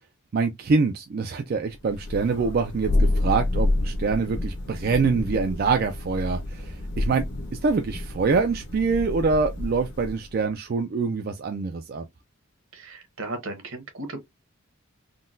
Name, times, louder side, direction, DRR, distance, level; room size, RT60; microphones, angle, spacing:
voice 1, 0.3-7.2 7.6-12.1, right 4 dB, 45° right, 0.3 m, -25 dB
Thunder, 1.9-10.3, left 2 dB, 50° left, 0.8 m, -29 dB
voice 2, 12.7-14.2, right 2 dB, 60° right, 1.1 m, -35 dB
3.7 x 2.2 x 2.5 m
head